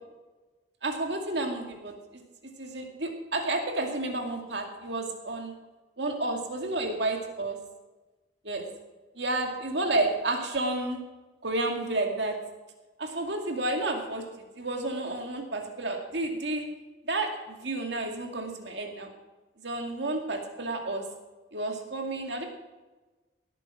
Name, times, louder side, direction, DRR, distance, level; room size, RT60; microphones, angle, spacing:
voice 1, 0.8-2.2 2.6-5.5 6.0-7.6 8.4-8.7 9.2-11.0 11.4-12.4 13.0-14.2 14.6-16.6 17.0-19.1 19.6-21.0 21.5-22.5, right 2 dB, 65° right, 2 dB, 2.3 m, -31 dB
18.0 x 9.3 x 6.0 m, 1.2 s
head